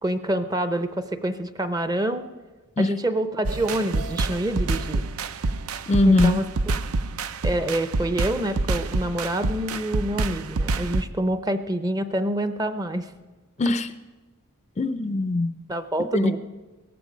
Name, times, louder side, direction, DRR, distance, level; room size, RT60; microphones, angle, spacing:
voice 1, 0.0-2.3 2.8-5.0 6.0-6.4 7.4-13.1 15.7-16.4, right 1 dB, 15° right, 10 dB, 0.6 m, -27 dB
sound 1, 3.4-11.0, right 3 dB, 75° right, 0.6 m, -27 dB
voice 2, 5.9-6.4 13.6-13.9 14.8-15.5 16.1-16.4, left 2 dB, 30° left, 12 dB, 0.4 m, -21 dB
17.5 x 14.5 x 5.1 m, 1.3 s
head